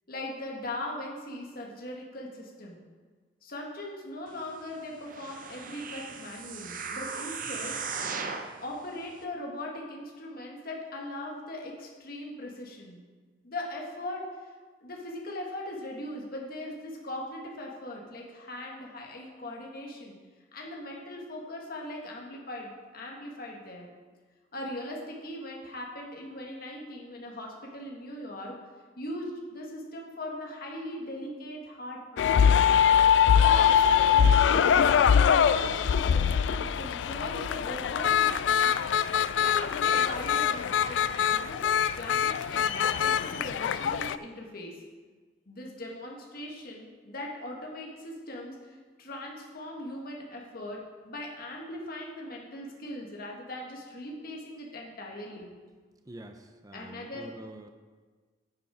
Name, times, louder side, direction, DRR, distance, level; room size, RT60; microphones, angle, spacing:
voice 1, 0.1-2.8 3.4-7.8 8.6-13.0 13.4-14.2 14.8-20.2 20.5-23.8 24.5-28.6 29.0-32.7 33.4-33.7 34.1-39.0 39.4-41.6 42.0-44.8 45.5-55.5 56.7-57.3, left 1 dB, 55° left, -1 dB, 1.7 m, -40 dB
sound 1, 5.0-8.5 9.1-9.2, right 5 dB, 50° right, 0.8 m, -37 dB
sound 2, 32.2-44.2, left 8 dB, 80° left, 0.3 m, -23 dB
voice 2, 56.1-57.7, right 1 dB, 20° right, 6 dB, 0.5 m, -46 dB
9.4 x 7.3 x 4.9 m, 1.4 s
head